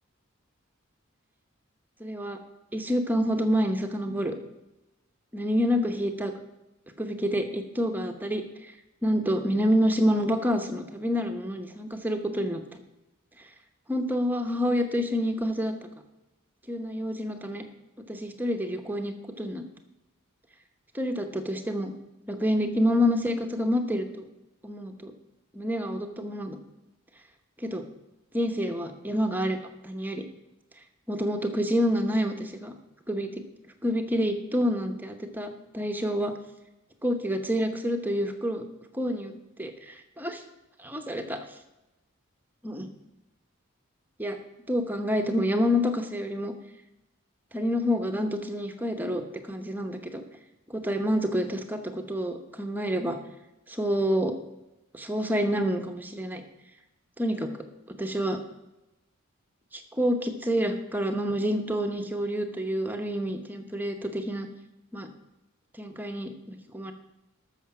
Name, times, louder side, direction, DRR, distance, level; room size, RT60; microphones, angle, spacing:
voice 1, 2.0-2.4 2.7-4.3 5.3-6.3 7.0-8.4 9.0-12.6 13.9-15.7 16.7-17.6 18.1-19.6 20.9-21.9 22.3-24.3 24.6-25.1 25.5-26.6 27.6-27.8 28.3-29.6 29.8-30.2 31.1-32.7 33.1-33.3 33.8-36.3 37.0-38.6 38.9-39.3 39.6-40.4 40.8-41.4 42.6-42.9 44.2-44.4 44.7-46.5 47.5-49.2 49.5-50.2 50.7-53.1 53.7-54.3 54.9-56.4 57.2-57.5 58.0-58.4 60.0-64.5 64.9-65.1 65.8-66.9, equal, 10° right, 6 dB, 0.9 m, -28 dB
13.5 x 6.5 x 6.0 m, 0.99 s
head